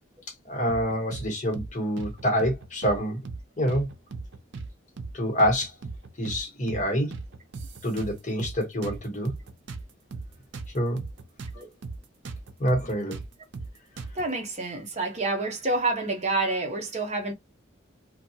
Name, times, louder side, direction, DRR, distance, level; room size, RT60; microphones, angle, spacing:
voice 1, 0.5-3.2 3.6-3.9 5.1-5.7 6.2-7.1 7.8-9.3 10.7-11.0 12.6-13.2, equal, 40° left, 1.0 m, -26 dB
sound 1, 0.7-1.3 1.5-1.7 2.0-3.0 3.3-3.4 3.7-4.7 5.0-5.1 5.4-6.4 6.7-6.8 7.1-8.6 8.8-11.6 11.8-12.0 12.3-14.3, right 3 dB, 70° right, 0.6 m, -38 dB
voice 2, 14.1-17.3, right 2 dB, 35° right, 0.8 m, -28 dB
2.7 x 2.2 x 2.7 m
head